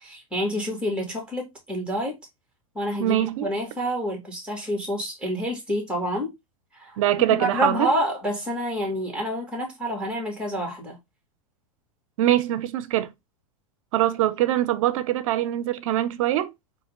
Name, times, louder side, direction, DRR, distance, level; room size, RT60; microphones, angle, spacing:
voice 1, 0.0-2.2 2.7-6.3 6.7-7.0 7.3-11.0, equal, 5° right, 2.2 m, -28 dB
voice 2, 3.0-3.5 7.0-7.9 12.2-13.1 13.9-16.5, right 13 dB, 70° right, 0.7 m, -23 dB
4.2 x 2.8 x 3.6 m
hypercardioid pair, 115°, 18 cm